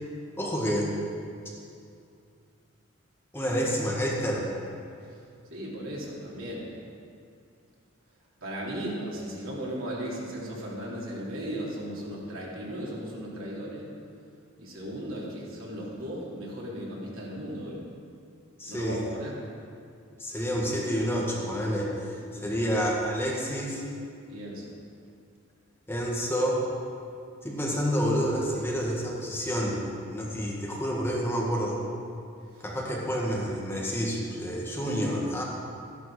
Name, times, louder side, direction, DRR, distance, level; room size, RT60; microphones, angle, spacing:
voice 1, 0.4-0.9 3.3-4.5 18.6-19.0 20.2-23.8 25.9-26.6 27.4-29.8 30.1-31.8 32.6-35.4, equal, 10° left, -3 dB, 1.6 m, -29 dB
voice 2, 5.5-6.7 8.4-13.9 14.6-17.8 18.7-19.4 22.3-22.6 24.3-24.7 32.5-32.7, equal, 85° right, -5 dB, 3.0 m, -36 dB
13.5 x 11.0 x 4.8 m, 2.4 s
head